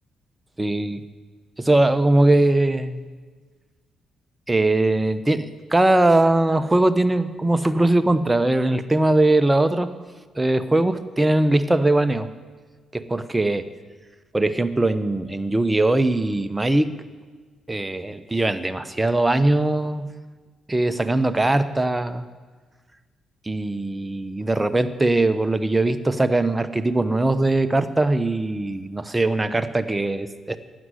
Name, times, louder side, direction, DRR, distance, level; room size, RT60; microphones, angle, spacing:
voice 1, 0.6-1.0 1.6-3.0 4.5-9.9 10.4-12.3 12.9-13.7 14.3-17.0 17.7-20.1 20.7-22.3 23.5-30.6, right 2 dB, 20° right, 12 dB, 1.1 m, -20 dB
12.5 x 9.6 x 9.4 m, 1.4 s
hypercardioid pair, 45°, 0 cm